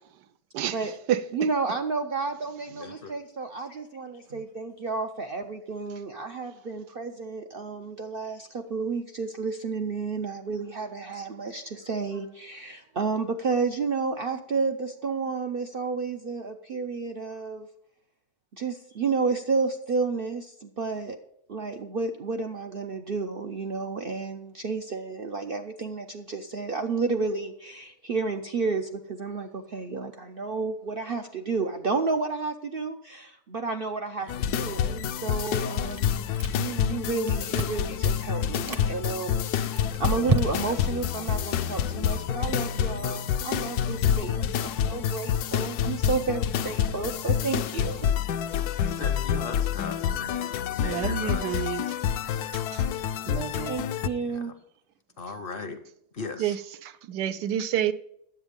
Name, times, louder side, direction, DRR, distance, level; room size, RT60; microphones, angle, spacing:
voice 1, 0.5-1.2 50.8-51.9 52.5-52.8 53.3-53.8 56.4-57.9, right 10 dB, 85° right, 1.3 m, -29 dB
voice 2, 1.3-17.7 18.5-21.2 21.5-48.1 53.7-54.5, right 4 dB, 65° right, 0.5 m, -31 dB
voice 3, 2.7-3.1 34.2-34.4 43.0-43.9 48.9-51.7 54.1-54.5 55.2-55.8 56.2-56.6, left 4 dB, 45° left, 0.7 m, -39 dB
sound 1, 34.3-54.1, left 9 dB, 75° left, 1.1 m, -28 dB
Chewing mastication, 35.9-36.8 37.1-37.9 38.4-38.9 39.4-40.9, right 2 dB, 30° right, 0.7 m, -30 dB
10.0 x 8.0 x 5.2 m
omnidirectional pair, 1.8 m